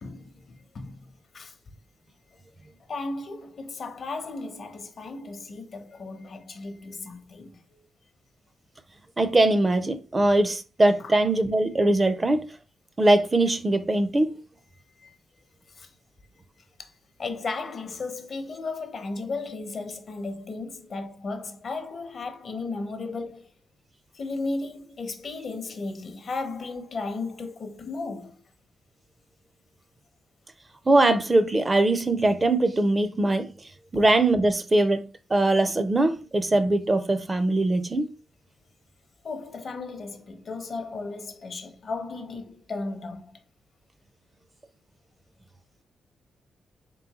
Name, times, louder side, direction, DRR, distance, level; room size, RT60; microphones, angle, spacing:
voice 1, 0.0-1.1 1.3-1.5 2.9-7.8 11.0-11.1 15.0-15.2 15.8-15.9 16.8-16.9 17.2-23.4 24.1-28.4 39.2-43.4, left 3 dB, 55° left, 0.7 m, -35 dB
voice 2, 9.2-12.5 13.0-14.3 30.9-33.5 33.9-35.0 35.3-38.1, right 2 dB, 30° right, 0.5 m, -21 dB
3.8 x 3.4 x 2.9 m
cardioid pair, 65°, 0 cm